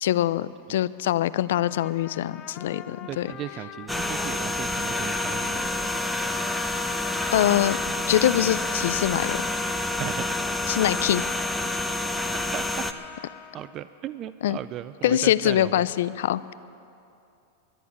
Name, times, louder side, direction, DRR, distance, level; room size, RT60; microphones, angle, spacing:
voice 1, 0.0-3.3 7.3-7.8 8.1-9.5 10.7-11.3 14.4-14.6 15.0-16.5, left 12 dB, 75° left, 17 dB, 0.4 m, -24 dB
Trumpet, 1.5-8.0 8.5-13.8, left 8 dB, 35° left, 0.8 m, -42 dB
voice 2, 3.1-5.9 10.0-10.5 12.5-12.8 13.5-15.9, right 11 dB, 40° right, 14 dB, 0.4 m, -36 dB
sound 1, 3.9-12.9, left 2 dB, ahead, 0.8 m, -28 dB
11.5 x 11.0 x 9.5 m, 2.7 s
hypercardioid pair, 115°, 0 cm